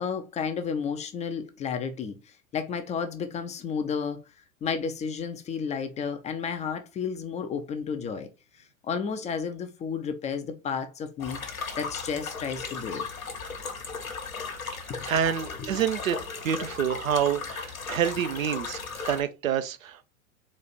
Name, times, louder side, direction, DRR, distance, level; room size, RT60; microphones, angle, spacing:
voice 1, 0.0-4.2 4.6-8.3 8.5-11.4 11.8-13.0 14.9-15.0 15.6-15.8, left 6 dB, 20° left, 0.4 m, -32 dB
sound 1, 11.2-19.2, left 5 dB, 85° left, 1.2 m, -36 dB
voice 2, 15.1-16.2 16.4-18.8 19.0-20.1, right 9 dB, 80° right, 0.6 m, -27 dB
4.2 x 2.5 x 4.0 m
figure-of-eight pair, 90°, 41 cm